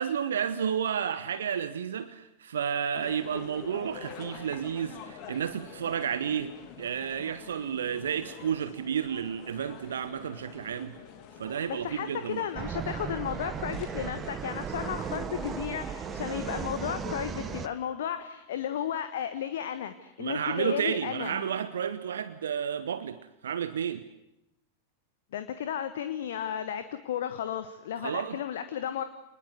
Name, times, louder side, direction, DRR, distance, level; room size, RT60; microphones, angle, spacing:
voice 1, 0.0-11.0 11.4-12.5 20.2-24.1 28.0-28.4, right 8 dB, 65° right, 1.1 m, -31 dB
sound 1, 2.9-17.7, left 8 dB, 40° left, 3.1 m, -47 dB
voice 2, 11.7-21.4 25.3-29.0, left 9 dB, 60° left, 1.4 m, -34 dB
sound 2, 12.5-17.7, right 8 dB, 25° right, 1.3 m, -36 dB
27.5 x 20.5 x 8.1 m
figure-of-eight pair, 90°, 0 cm